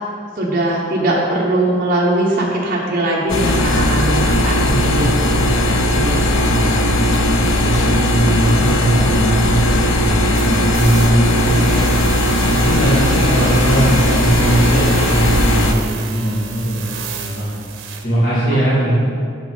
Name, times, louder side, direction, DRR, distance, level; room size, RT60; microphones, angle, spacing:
voice 1, 0.4-4.6 4.8-5.4 5.9-6.5 18.5-19.0, right 1 dB, 45° right, -4 dB, 1.2 m, -20 dB
sound 1, 3.3-15.7, left 1 dB, 85° left, 0.7 m, -17 dB
voice 2, 4.6-5.5 6.1-6.9 7.6-11.8 12.4-16.9 17.2-17.5 18.0-19.2, right 1 dB, 50° left, -10 dB, 2.1 m, -20 dB
sound 2, 10.3-18.0, right 5 dB, 85° right, 0.8 m, -30 dB
7.7 x 5.9 x 5.5 m, 2.3 s
head